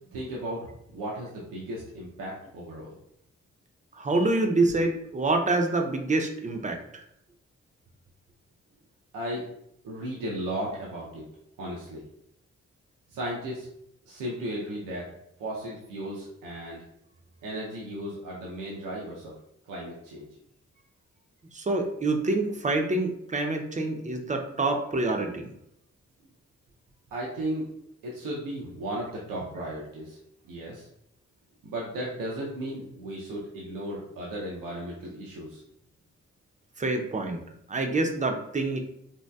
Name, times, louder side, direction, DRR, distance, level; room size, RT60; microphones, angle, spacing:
voice 1, 0.1-0.6 0.9-2.9 9.1-9.4 9.8-11.2 11.6-12.0 13.1-13.7 14.1-15.1 15.4-16.8 17.4-19.3 19.7-20.3 27.1-27.7 28.0-30.2 30.5-30.9 31.6-35.6, right 1 dB, 85° right, -4 dB, 0.6 m, -35 dB
voice 2, 4.0-7.0 21.5-25.5 36.8-37.4 37.7-38.8, right 2 dB, 25° right, 4 dB, 0.5 m, -26 dB
3.0 x 2.7 x 2.2 m, 0.77 s
supercardioid pair, 45°, 32 cm